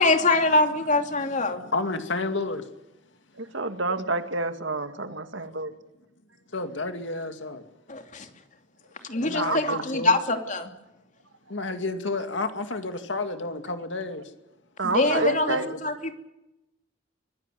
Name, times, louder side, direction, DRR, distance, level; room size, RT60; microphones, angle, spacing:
voice 1, 0.0-1.6 7.9-8.3 9.1-10.7 14.8-16.1, left 2 dB, 40° left, 2.7 m, -24 dB
voice 2, 1.2-2.6 6.5-7.6 9.2-10.2 11.5-14.2 15.0-15.8, left 3 dB, 70° left, 2.3 m, -31 dB
voice 3, 3.4-5.7 9.4-9.8 14.8-15.7, right 3 dB, 70° right, 2.1 m, -28 dB
25.0 x 16.0 x 9.3 m
head